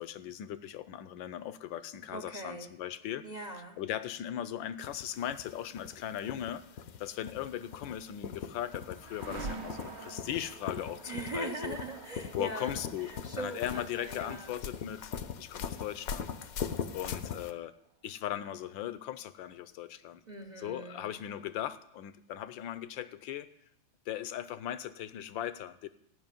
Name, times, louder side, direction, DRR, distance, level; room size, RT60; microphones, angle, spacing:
voice 1, 0.0-3.2 3.8-6.6 7.0-11.8 12.3-15.1 15.4-16.3 16.9-17.7 18.0-20.2 20.6-23.5 24.1-25.9, left 11 dB, 75° left, 14 dB, 1.4 m, -38 dB
voice 2, 2.1-2.7 3.2-3.8 11.0-14.6 20.3-21.2, right 2 dB, 45° right, 5 dB, 0.5 m, -41 dB
sound 1, 4.8-17.5, left 7 dB, 60° left, 1.0 m, -41 dB
sound 2, 8.0-17.9, right 4 dB, 65° right, 1.7 m, -48 dB
14.5 x 6.0 x 9.0 m, 0.75 s
omnidirectional pair, 2.1 m